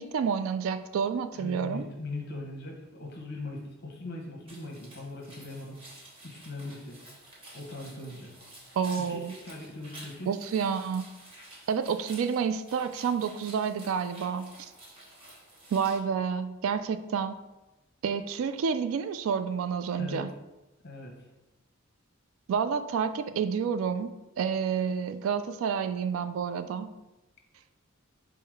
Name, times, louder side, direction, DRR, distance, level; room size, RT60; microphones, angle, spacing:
voice 1, 0.0-1.9 8.8-9.3 10.3-11.1 11.7-14.7 15.7-17.4 18.0-20.3 22.5-24.1 24.4-26.9, right 6 dB, 70° right, 11 dB, 0.3 m, -29 dB
voice 2, 1.3-5.8 6.2-7.0 7.5-8.3 9.0-10.3 20.0-20.2 20.8-21.2, left 2 dB, 55° left, 1 dB, 0.9 m, -40 dB
sound 1, 4.5-16.0, right 1 dB, 25° right, 1.2 m, -51 dB
4.6 x 2.1 x 4.6 m, 1.0 s
head